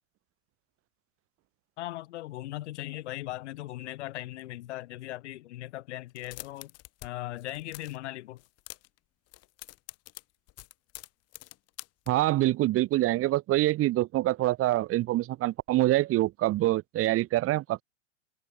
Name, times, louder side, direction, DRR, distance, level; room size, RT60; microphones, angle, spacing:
voice 1, 1.8-6.7 7.0-8.4, left 15 dB, 65° left, 6.0 m, -38 dB
sound 1, 6.1-7.1 7.3-8.0 8.4-9.0 9.3-12.1, left 18 dB, 40° left, 5.1 m, -46 dB
voice 2, 12.1-17.8, right 16 dB, 35° right, 2.4 m, -25 dB
hypercardioid pair, 100°, 37 cm